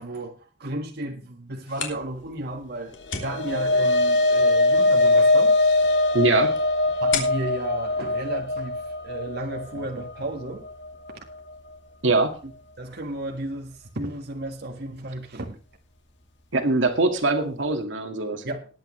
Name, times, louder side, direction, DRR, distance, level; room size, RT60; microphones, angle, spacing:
voice 1, 0.0-5.6 7.0-10.6 12.4-12.5 12.8-15.6 18.4-18.7, right 1 dB, 60° right, 1.8 m, -33 dB
sound 1, 1.5-9.0, left 6 dB, 85° left, 3.0 m, -38 dB
sound 2, 3.0-11.5, left 2 dB, 65° left, 1.7 m, -22 dB
voice 2, 6.1-6.6 12.0-12.4 16.5-18.4, right 2 dB, 80° right, 2.0 m, -22 dB
20.0 x 8.6 x 3.2 m
head